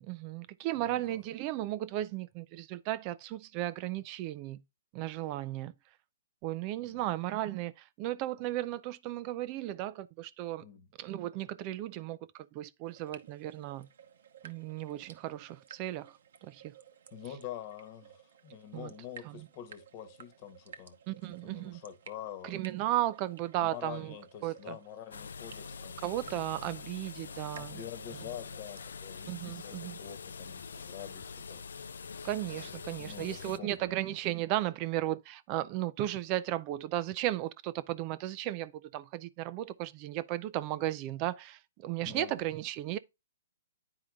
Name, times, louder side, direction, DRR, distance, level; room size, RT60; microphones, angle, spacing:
voice 1, 0.0-4.6 4.9-5.7 6.4-10.7 11.0-13.9 14.4-16.7 18.7-18.9 19.4-19.5 21.1-21.8 22.4-24.1 24.4-24.8 26.0-27.8 29.2-30.0 32.2-43.0, right 14 dB, 35° right, 0.4 m, -35 dB
voice 2, 0.7-1.2 6.8-7.1 10.6-10.9 17.1-22.5 23.6-26.0 27.5-31.6 33.0-33.9 42.0-42.4, left 11 dB, 35° left, 1.2 m, -46 dB
sound 1, 12.8-28.9, right 8 dB, 70° right, 0.9 m, -55 dB
sound 2, 25.1-33.6, left 5 dB, 80° left, 0.4 m, -45 dB
9.7 x 4.8 x 2.3 m
hypercardioid pair, 145°, 0 cm